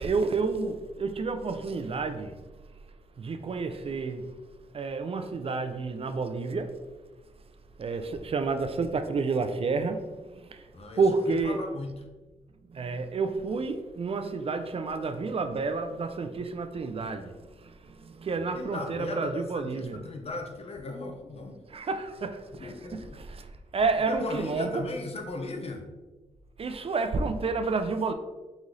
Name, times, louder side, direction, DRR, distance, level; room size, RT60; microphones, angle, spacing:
voice 1, 0.0-2.4 3.2-4.3 4.7-6.8 7.8-10.7 11.0-11.6 12.7-20.1 21.7-23.5 23.7-24.8 26.6-28.1, right 4 dB, 45° right, 0.4 m, -30 dB
voice 2, 10.7-11.9 18.5-21.6 22.6-23.2 24.1-25.9, left 2 dB, 50° left, 0.8 m, -37 dB
4.0 x 3.0 x 3.8 m
cardioid pair, 75°, 13 cm